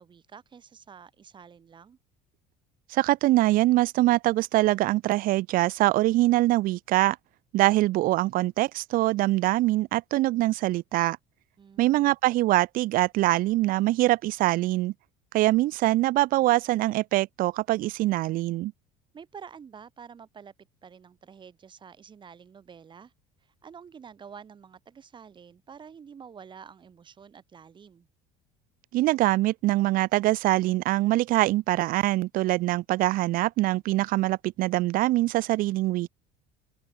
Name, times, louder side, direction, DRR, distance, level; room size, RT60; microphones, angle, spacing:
voice 1, 0.0-2.0 11.6-12.1 19.1-20.5 20.8-23.1 23.4-28.1, right 7 dB, 30° right, 3.6 m, -48 dB
voice 2, 2.9-7.2 7.5-11.2 11.8-14.9 15.3-18.7 28.9-36.1, right 17 dB, 60° right, 1.0 m, -23 dB
open air
cardioid pair, 130°, 17 cm